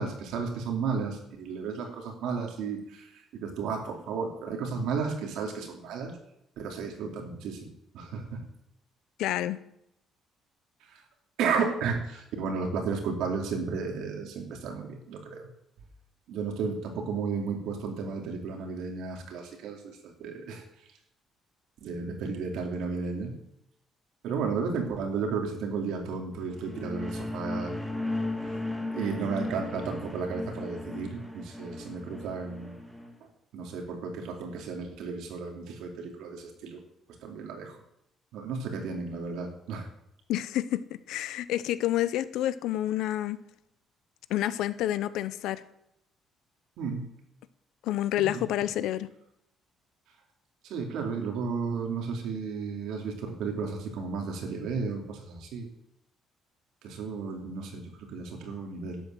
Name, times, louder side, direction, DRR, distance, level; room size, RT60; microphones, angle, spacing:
voice 1, 0.0-6.1 6.6-8.4 10.9-11.0 11.4-15.5 16.3-20.6 21.8-23.3 24.2-27.7 28.9-32.8 33.5-36.8 37.2-37.8 38.3-39.9 46.8-47.1 48.1-48.4 50.6-55.7 56.8-59.0, right 5 dB, 75° right, 2 dB, 2.8 m, -33 dB
voice 2, 9.2-9.6 40.3-43.4 44.3-45.6 47.8-49.1, left 13 dB, 80° left, 15 dB, 0.7 m, -29 dB
sound 1, 26.4-33.1, left 2 dB, ahead, 1.7 m, -36 dB
12.0 x 8.0 x 7.6 m, 0.79 s
cardioid pair, 170°, 0 cm